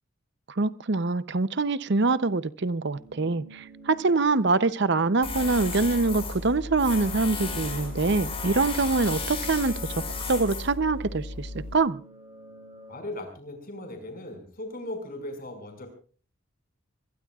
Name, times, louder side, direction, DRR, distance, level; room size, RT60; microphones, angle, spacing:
voice 1, 0.6-9.7 10.3-12.0, right 3 dB, 55° right, 15 dB, 0.7 m, -24 dB
sound 1, 3.0-13.0, right 3 dB, 20° right, 6.1 m, -49 dB
Tools, 5.2-11.7, left 4 dB, 30° left, 5.4 m, -34 dB
voice 2, 12.9-15.9, left 1 dB, 45° left, 5 dB, 5.6 m, -38 dB
25.0 x 22.0 x 2.4 m, 0.40 s
head